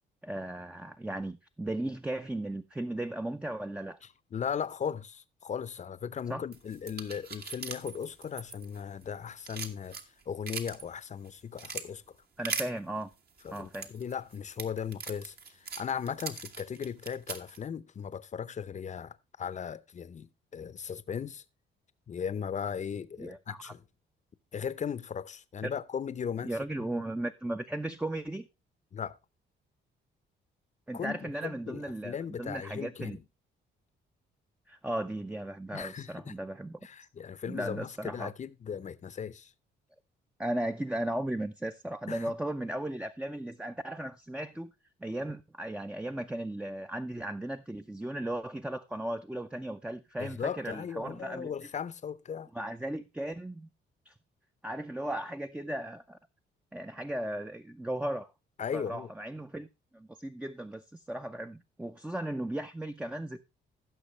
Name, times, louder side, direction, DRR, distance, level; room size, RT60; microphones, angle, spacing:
voice 1, 0.2-4.0 6.3-6.4 12.4-13.1 13.5-13.9 23.2-23.7 25.6-25.7 26.4-28.5 30.9-33.2 34.7-36.8 37.5-38.3 40.4-44.7 45.0-51.5 52.5-53.7 54.1-54.2 54.6-56.2 56.7-58.3 58.7-59.7 59.9-63.4, right 1 dB, 5° right, 0.5 m, -36 dB
voice 2, 4.3-10.0 10.3-12.2 13.4-21.4 22.1-23.8 24.5-26.5 26.8-26.9 28.9-29.1 30.9-33.2 35.7-36.3 36.8-39.5 42.1-42.3 50.2-52.5 58.6-59.1, left 7 dB, 35° left, 0.7 m, -37 dB
sound 1, 6.5-9.0 9.3-10.8 11.3-11.8 12.4-12.7 13.4-17.6, right 5 dB, 50° right, 1.4 m, -39 dB
15.5 x 6.3 x 3.2 m
cardioid pair, 90°, 20 cm